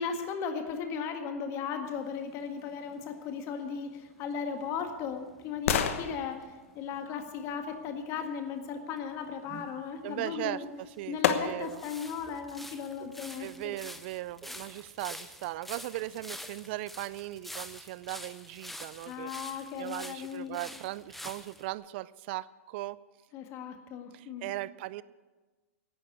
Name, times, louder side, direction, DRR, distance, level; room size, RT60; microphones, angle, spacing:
voice 1, 0.0-6.4 6.8-10.7 11.1-13.7 19.1-20.6 23.3-24.5, left 6 dB, 35° left, 6 dB, 1.8 m, -36 dB
sound 1, 1.9-8.0 9.6-9.7 10.5-21.7, left 1 dB, ahead, 0.7 m, -48 dB
sound 2, 4.1-8.2 10.3-10.4 11.2-11.9 12.4-12.5, left 8 dB, 65° left, 1.1 m, -34 dB
sound 3, 9.4-9.9 10.6-10.8 11.5-11.6 12.2-12.4 13.0-13.1 13.7-13.8 14.4-14.5 15.1-15.2 15.8-15.9 16.4-16.5, right 7 dB, 25° right, 1.0 m, -49 dB
voice 2, 10.0-11.8 13.4-23.0 24.1-25.0, right 17 dB, 50° right, 19 dB, 0.3 m, -38 dB
11.0 x 9.2 x 8.5 m, 1.3 s
hypercardioid pair, 140°, 8 cm